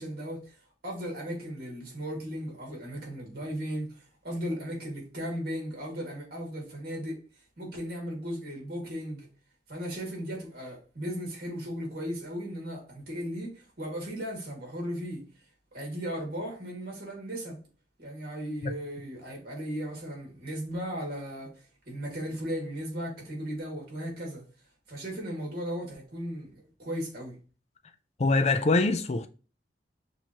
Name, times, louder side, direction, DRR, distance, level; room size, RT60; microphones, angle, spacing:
voice 1, 0.0-7.2 7.6-9.3 9.7-15.2 15.7-17.6 18.0-21.5 21.9-24.4 24.9-27.4, equal, 60° right, 2.2 m, -36 dB
voice 2, 28.2-29.3, left 3 dB, 40° left, 0.5 m, -24 dB
6.2 x 2.7 x 2.9 m
head